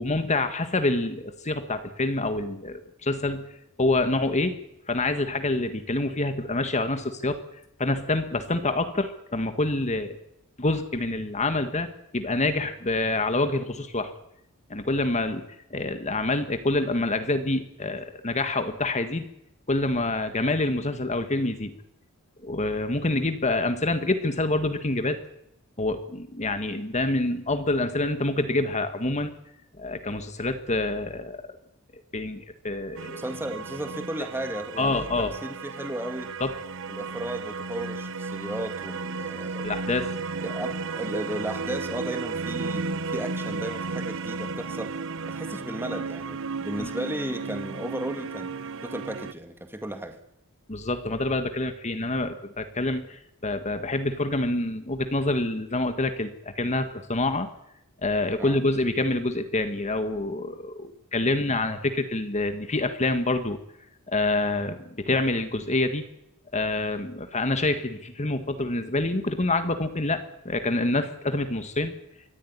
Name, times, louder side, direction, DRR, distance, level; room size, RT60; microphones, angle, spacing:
voice 1, 0.0-3.5 3.8-4.6 4.9-7.4 7.8-10.2 10.6-14.1 14.7-19.3 19.7-21.7 22.4-25.2 25.8-29.3 29.8-31.4 32.1-33.2 34.8-35.3 36.4-36.5 39.6-40.1 46.8-46.9 50.7-57.5 58.0-63.6 64.1-66.0 66.5-71.9, left 2 dB, 35° left, 8 dB, 1.8 m, -27 dB
sound 1, 33.0-49.3, right 4 dB, 65° right, 1.0 m, -34 dB
voice 2, 33.2-36.3 36.9-39.7 40.4-45.0 45.3-48.6 48.8-50.2 58.4-58.6, right 1 dB, 10° right, 6 dB, 2.1 m, -35 dB
24.5 x 15.5 x 9.7 m, 0.79 s
head